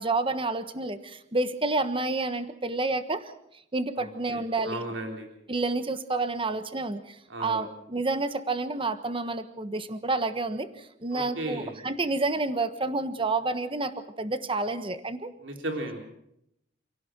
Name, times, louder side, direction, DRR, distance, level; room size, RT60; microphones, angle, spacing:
voice 1, 0.0-3.3 3.7-4.8 5.5-15.3, right 3 dB, 30° right, 10 dB, 1.3 m, -29 dB
voice 2, 4.0-5.3 7.3-7.7 11.1-11.8 15.4-16.0, right 1 dB, 85° right, 3 dB, 3.5 m, -35 dB
28.0 x 17.5 x 6.2 m, 0.77 s
head